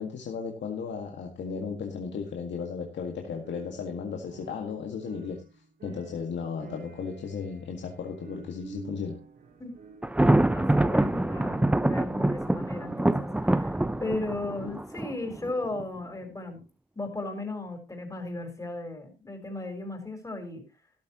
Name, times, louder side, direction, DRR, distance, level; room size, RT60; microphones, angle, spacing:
voice 1, 0.0-5.4 5.8-9.2, left 6 dB, 70° left, 1 dB, 1.9 m, -35 dB
sound 1, 3.4-4.7 5.0-10.3, right 5 dB, 55° right, 3.6 m, -48 dB
Thunder, 10.0-15.8, right 1 dB, 5° right, 0.6 m, -25 dB
voice 2, 10.5-16.6 17.0-20.6, left 2 dB, 15° left, 4 dB, 4.2 m, -36 dB
13.5 x 12.0 x 3.0 m, 0.28 s
cardioid pair, 105°, 20 cm